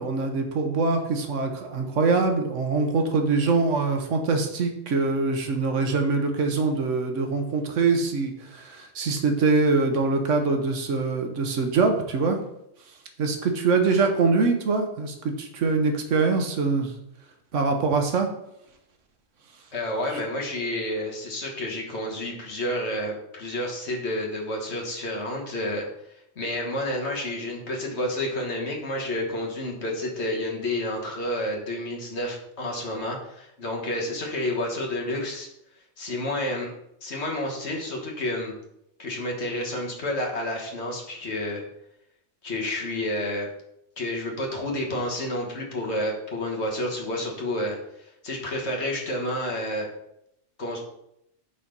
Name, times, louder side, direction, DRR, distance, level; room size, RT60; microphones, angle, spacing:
voice 1, 0.0-12.4 13.2-16.9 17.5-18.3, right 4 dB, 85° right, 5 dB, 1.3 m, -24 dB
voice 2, 19.7-25.8 26.4-35.5 36.0-36.7 37.0-38.5 39.0-41.6 42.4-43.5 44.0-47.8 48.2-49.9 50.6-50.8, left 1 dB, 65° left, 0 dB, 1.6 m, -30 dB
5.6 x 4.1 x 5.1 m, 0.79 s
omnidirectional pair, 1.2 m